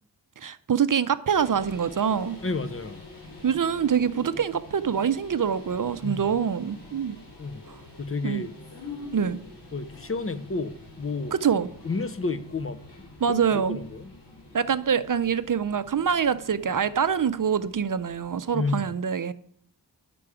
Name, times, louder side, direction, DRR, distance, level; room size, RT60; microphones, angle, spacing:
voice 1, 0.4-2.4 3.4-7.2 7.7-7.8 8.2-8.5 9.1-9.4 11.3-11.7 13.2-13.8 14.5-19.3, right 7 dB, 50° right, 0.5 m, -25 dB
sound 1, 1.3-18.8, left 3 dB, 70° left, 3.6 m, -46 dB
voice 2, 2.4-3.0 6.0-6.3 7.4-7.6 8.0-8.5 9.7-11.3 11.8-12.8 13.3-14.1 18.5-18.9, left 3 dB, 35° left, 0.6 m, -31 dB
11.0 x 6.8 x 4.9 m
wide cardioid pair, 70°, 41 cm